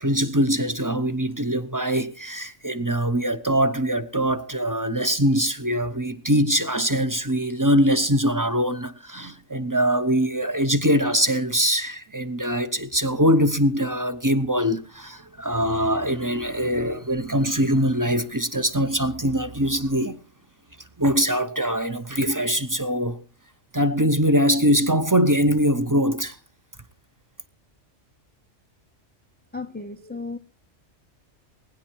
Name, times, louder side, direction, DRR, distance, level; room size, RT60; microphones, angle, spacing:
voice 1, 0.0-20.2 21.0-23.2 23.7-26.4, equal, 20° right, 0.8 m, -22 dB
voice 2, 29.5-30.4, left 3 dB, 15° left, 0.3 m, -34 dB
21.5 x 10.5 x 4.6 m
omnidirectional pair, 1.3 m